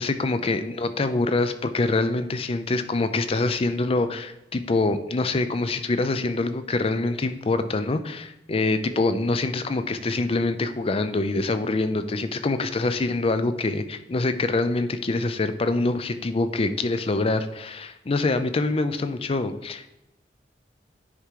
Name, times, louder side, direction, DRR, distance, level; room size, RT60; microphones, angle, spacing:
voice 1, 0.0-19.9, left 2 dB, 35° left, 10 dB, 0.5 m, -25 dB
9.9 x 3.7 x 4.7 m, 0.91 s
head